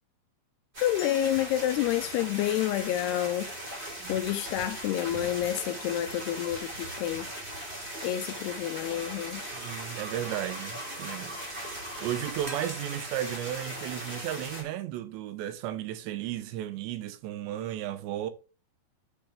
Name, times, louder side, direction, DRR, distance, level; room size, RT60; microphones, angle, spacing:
sound 1, 0.7-14.6, right 1 dB, 20° right, 2.3 m, -39 dB
voice 1, 0.8-3.5 4.1-7.3 8.0-9.4, left 12 dB, 80° left, 2.4 m, -29 dB
sound 2, 1.0-3.2, left 4 dB, 65° left, 2.8 m, -51 dB
voice 2, 9.5-18.3, right 12 dB, 80° right, 3.0 m, -34 dB
12.0 x 6.8 x 2.3 m
omnidirectional pair, 5.1 m